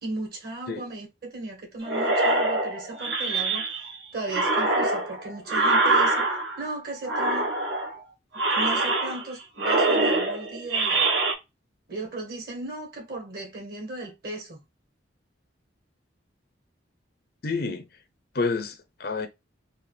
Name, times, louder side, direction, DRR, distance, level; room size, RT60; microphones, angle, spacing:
voice 1, 0.0-6.3 6.6-7.5 8.5-11.0 11.9-14.6, right 2 dB, 50° right, 2.1 m, -36 dB
sound 1, 1.9-4.0 4.3-6.7 7.1-8.0 8.3-9.3 9.6-11.3, right 2 dB, 70° right, 1.5 m, -24 dB
voice 2, 17.4-17.9 18.3-19.3, left 4 dB, 50° left, 0.6 m, -29 dB
4.2 x 2.8 x 3.4 m
head